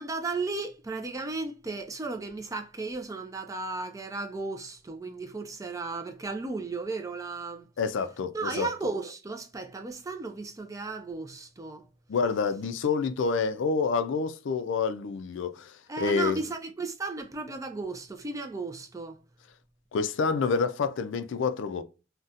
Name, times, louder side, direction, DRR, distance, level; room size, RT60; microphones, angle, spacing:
voice 1, 0.0-7.7 8.3-11.9 15.9-19.2, right 3 dB, 15° right, 0.3 m, -35 dB
voice 2, 7.8-8.7 12.1-16.4 19.9-21.8, left 5 dB, 65° left, 0.4 m, -28 dB
4.0 x 2.2 x 2.4 m
head